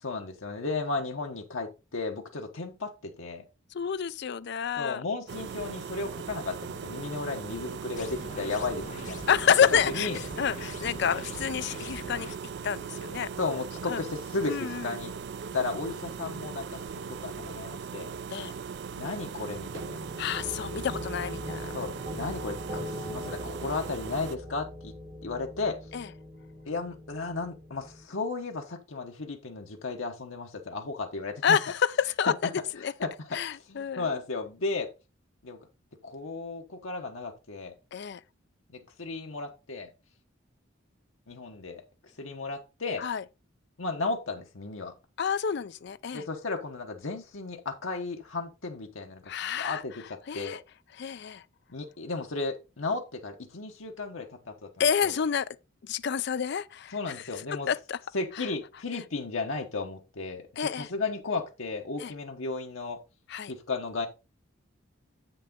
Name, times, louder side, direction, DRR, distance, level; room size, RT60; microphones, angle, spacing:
voice 1, 0.0-3.4 4.8-9.2 9.7-10.2 13.4-15.1 15.5-18.1 18.9-20.0 21.7-24.9 25.2-25.8 26.6-31.6 33.0-34.9 35.4-35.6 36.0-37.7 38.7-39.9 41.3-41.8 42.2-43.0 43.8-44.9 46.1-50.6 51.7-54.7 55.0-55.1 56.9-57.7 58.1-63.0 63.5-64.1, left 3 dB, 85° left, 1.1 m, -34 dB
voice 2, 3.7-5.0 9.3-10.1 10.4-12.3 12.6-13.3 13.9-14.0 14.5-14.9 18.3-18.5 20.2-21.8 25.9-26.1 31.4-32.3 32.8-32.9 33.3-34.1 37.9-38.2 43.0-43.2 45.2-46.2 49.3-49.8 50.3-50.6 51.0-51.4 54.8-55.5 55.8-57.2 57.7-58.0 58.9-59.0 60.6-60.9 62.0-62.1 63.3-63.5, left 7 dB, 55° left, 0.4 m, -28 dB
sound 1, 5.3-24.4, right 6 dB, 55° right, 0.4 m, -39 dB
sound 2, 8.0-12.4, left 2 dB, 40° left, 1.3 m, -42 dB
sound 3, 19.5-28.0, left 1 dB, 35° right, 5.0 m, -41 dB
7.9 x 6.6 x 3.7 m
head